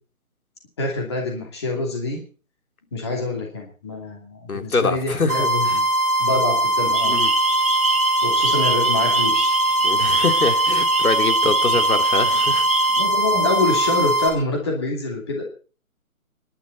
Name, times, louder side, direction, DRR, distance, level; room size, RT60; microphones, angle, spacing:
voice 1, 0.8-2.2 2.9-5.9 6.2-7.2 8.2-9.5 11.4-11.5 13.0-15.4, left 3 dB, 20° left, 0 dB, 2.7 m, -26 dB
voice 2, 4.5-5.8 7.0-7.3 9.8-12.6, left 4 dB, 80° left, 6 dB, 3.2 m, -24 dB
sound 1, 5.3-14.3, right 1 dB, 5° right, 1.9 m, -21 dB
sound 2, 6.9-13.0, right 3 dB, 25° right, 1.2 m, -25 dB
25.0 x 11.5 x 4.1 m, 0.39 s
hypercardioid pair, 180°, 42 cm